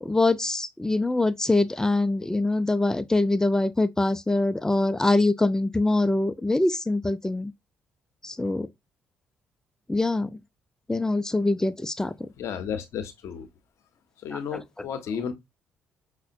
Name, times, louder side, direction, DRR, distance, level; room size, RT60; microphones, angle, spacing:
voice 1, 0.0-7.5 8.2-8.7 9.9-10.3 10.9-12.1 14.3-14.4, left 2 dB, 10° left, 0.4 m, -24 dB
voice 2, 12.3-13.5 14.2-15.3, left 7 dB, 60° left, 0.7 m, -33 dB
5.5 x 2.1 x 2.6 m
figure-of-eight pair, 45°, 6 cm